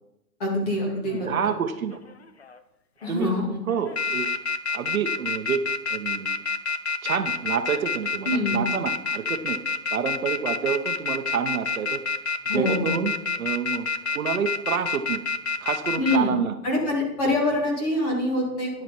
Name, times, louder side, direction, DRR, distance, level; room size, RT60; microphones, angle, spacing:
voice 1, 0.4-1.3 3.0-3.6 8.3-8.6 12.5-13.1 16.0-16.3 16.6-18.7, left 1 dB, 25° left, -2 dB, 2.2 m, -25 dB
sound 1, 0.9-1.2 1.9-2.6 3.0-3.3 3.7-16.2, left 4 dB, 45° left, 0.4 m, -27 dB
voice 2, 0.9-2.0 3.1-3.3 3.6-4.3 4.7-5.6 5.9-6.4 7.0-9.6 9.9-12.0 12.5-13.1 13.4-13.9 14.1-15.2 15.6-16.6, right 7 dB, 55° right, 8 dB, 0.9 m, -28 dB
11.0 x 7.4 x 4.3 m, 0.89 s
hypercardioid pair, 175°, 49 cm